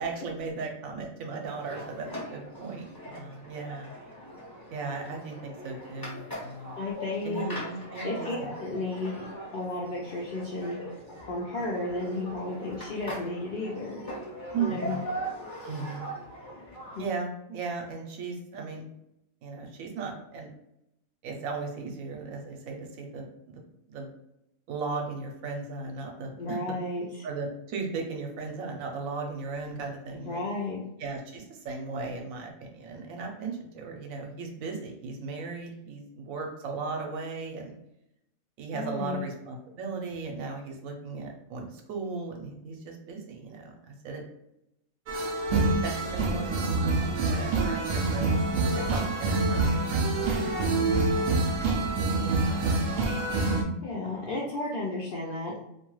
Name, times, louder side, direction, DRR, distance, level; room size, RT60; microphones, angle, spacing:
voice 1, 0.0-3.9 4.7-6.8 7.2-8.5 14.5-15.0 15.6-16.1 17.0-18.9 19.4-20.5 21.2-24.1 24.7-26.6 27.2-30.4 31.0-37.7 38.6-44.2 45.8-48.2 48.8-50.3 51.1-51.2 51.5-52.3 54.2-54.3, right 4 dB, 80° right, 2 dB, 1.0 m, -37 dB
sound 1, 1.4-17.1, right 1 dB, 20° left, 0.7 m, -40 dB
voice 2, 6.8-7.5 8.0-9.3 9.5-10.8 11.3-14.0 14.6-15.0 17.0-17.1 26.4-27.3 30.1-30.8 38.7-39.2 53.8-55.6, left 2 dB, 65° left, -5 dB, 0.5 m, -33 dB
sound 2, 45.1-53.6, right 3 dB, 65° right, 0.6 m, -26 dB
2.5 x 2.2 x 3.0 m, 0.82 s
omnidirectional pair, 1.4 m